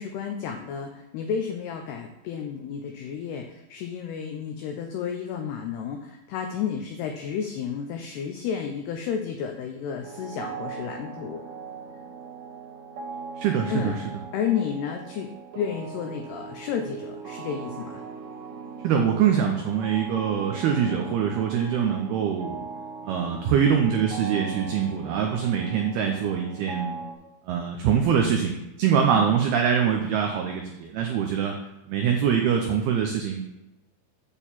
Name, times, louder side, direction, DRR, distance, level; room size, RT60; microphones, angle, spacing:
voice 1, 0.0-11.4 13.7-14.0 14.3-15.3 15.6-18.0 29.1-29.4, left 7 dB, 90° left, 4 dB, 2.3 m, -31 dB
sound 1, 10.0-27.1, right 5 dB, 65° right, 3.4 m, -39 dB
voice 2, 13.4-14.0 18.8-22.6 23.1-27.0 27.5-31.5 31.9-33.5, right 7 dB, 90° right, 2 dB, 2.2 m, -24 dB
8.8 x 4.5 x 7.3 m, 0.96 s
omnidirectional pair, 5.6 m